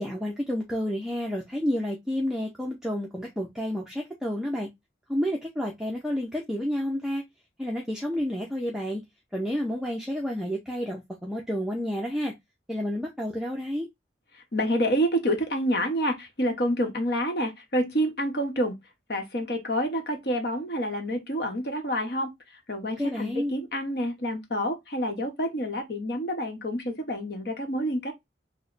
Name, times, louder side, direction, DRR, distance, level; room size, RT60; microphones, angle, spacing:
voice 1, 0.0-4.7 5.1-7.2 7.6-9.0 9.3-12.3 12.7-13.9 23.0-23.5, equal, 5° right, 0.5 m, -30 dB
voice 2, 14.5-18.8 19.1-22.3 22.7-28.1, equal, 60° left, 1.0 m, -28 dB
3.1 x 2.1 x 3.8 m
head